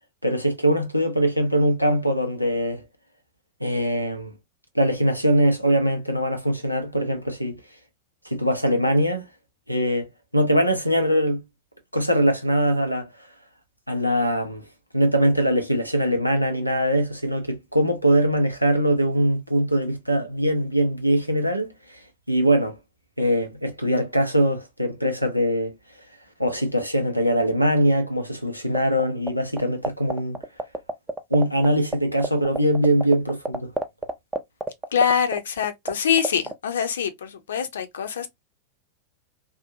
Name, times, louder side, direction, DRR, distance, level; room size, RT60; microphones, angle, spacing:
voice 1, 0.2-2.8 3.6-4.3 4.7-7.6 8.2-9.3 9.7-10.1 10.3-11.4 11.9-13.1 13.9-14.7 14.9-22.0 22.3-22.8 23.2-25.7 26.4-30.4 31.3-33.7, equal, 90° right, 0.6 m, -22 dB
sound 1, 28.7-29.3 29.6-31.7 31.9-32.0 32.2-35.9 36.2-36.5, right 2 dB, 10° right, 0.4 m, -26 dB
voice 2, 34.9-38.3, left 7 dB, 65° left, 0.5 m, -24 dB
2.7 x 2.1 x 2.5 m
figure-of-eight pair, 90°, 0 cm